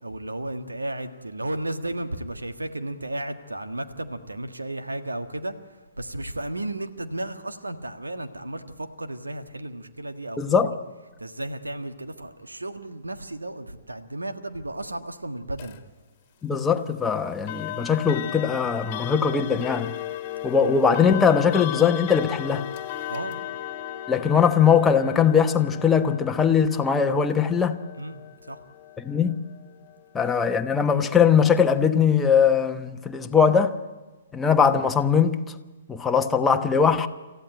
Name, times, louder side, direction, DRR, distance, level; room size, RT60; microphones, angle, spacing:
voice 1, 0.0-10.7 11.2-15.8 23.1-23.4 28.0-28.6, right 1 dB, 80° right, 1.6 m, -34 dB
voice 2, 10.4-10.7 16.4-19.9 20.4-22.7 24.1-27.8 29.0-29.5 30.1-33.8 34.3-35.4 35.9-37.1, left 6 dB, 10° left, 1.2 m, -21 dB
sound 1, 15.6-15.8 17.5-30.3, left 12 dB, 35° left, 1.8 m, -36 dB
27.5 x 15.0 x 9.0 m
figure-of-eight pair, 120°, 0 cm